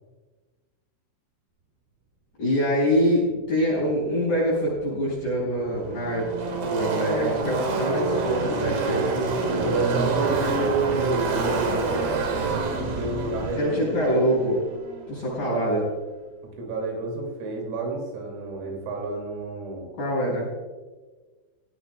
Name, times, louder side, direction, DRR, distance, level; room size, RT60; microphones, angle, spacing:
voice 1, 2.4-6.3 6.6-9.1 13.6-14.7 15.1-15.9 20.0-20.5, equal, 40° left, -7 dB, 6.2 m, -24 dB
Car passing by / Race car auto racing, 5.0-15.6, right 3 dB, 60° right, 3.0 m, -28 dB
voice 2, 9.6-12.0 12.6-14.3 15.1-15.8 16.6-19.9, right 3 dB, 80° right, 1 dB, 5.3 m, -30 dB
16.5 x 16.5 x 2.3 m, 1.3 s
omnidirectional pair, 6.0 m